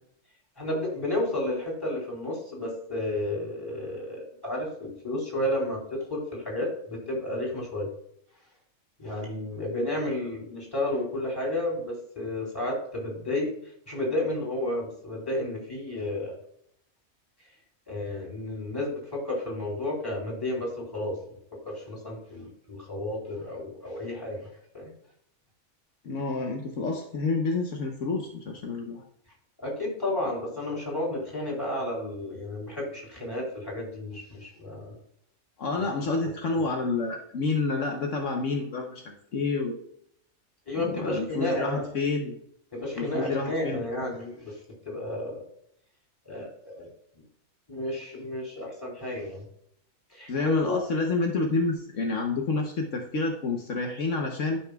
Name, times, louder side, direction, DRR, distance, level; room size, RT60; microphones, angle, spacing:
voice 1, 0.6-7.9 9.0-13.5 13.9-16.4 17.9-21.1 21.6-24.5 24.7-24.9 29.6-34.9 40.7-41.9 42.7-44.6 44.8-45.4 46.2-46.9 47.7-49.4 50.1-50.8, left 1 dB, 15° left, -4 dB, 3.2 m, -32 dB
voice 2, 26.0-29.0 35.6-39.8 40.8-42.4 43.0-43.8 50.3-54.6, left 3 dB, 70° left, 2 dB, 1.3 m, -29 dB
12.5 x 5.6 x 2.3 m, 0.71 s
omnidirectional pair, 1.4 m